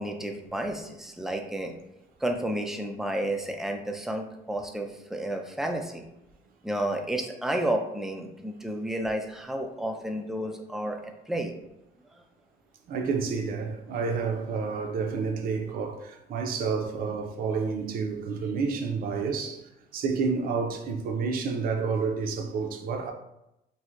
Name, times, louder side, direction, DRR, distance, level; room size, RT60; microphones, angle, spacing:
voice 1, 0.0-1.7 2.2-6.0 6.6-11.5, right 1 dB, ahead, 0.4 m, -31 dB
voice 2, 12.9-23.1, right 5 dB, 60° right, 0.5 m, -29 dB
3.1 x 2.7 x 2.5 m
cardioid pair, 110°, 17 cm